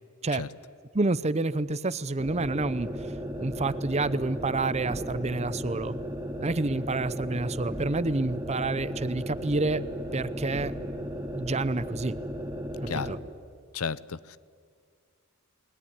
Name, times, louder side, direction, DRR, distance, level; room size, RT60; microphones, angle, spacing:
voice 1, 0.9-2.9 3.4-6.0 6.4-9.8 10.1-10.7 11.3-12.1 12.8-13.2, right 3 dB, 30° right, 16 dB, 0.7 m, -28 dB
sound 1, 2.2-13.2, equal, 10° right, 2.7 m, -35 dB
voice 2, 12.9-13.2 13.7-14.4, left 5 dB, 75° left, 18 dB, 0.7 m, -33 dB
29.0 x 20.5 x 9.9 m, 2.1 s
head